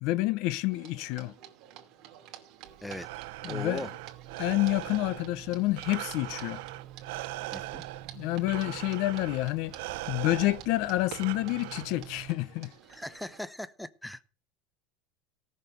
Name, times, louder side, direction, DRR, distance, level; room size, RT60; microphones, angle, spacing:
voice 1, 0.0-1.3 3.4-3.9 4.4-6.6 8.1-9.7 10.1-12.7, left 18 dB, 60° left, 0.7 m, -28 dB
sound 1, 0.7-13.4, right 11 dB, 45° right, 2.6 m, -51 dB
Breathing, 2.7-12.3, right 18 dB, 80° right, 0.8 m, -41 dB
sound 2, 2.8-12.3, right 11 dB, 30° right, 1.5 m, -50 dB
voice 2, 3.4-3.9 7.5-7.8 12.9-14.3, left 1 dB, 5° left, 0.7 m, -39 dB
18.0 x 6.6 x 6.7 m
supercardioid pair, 145°, 0 cm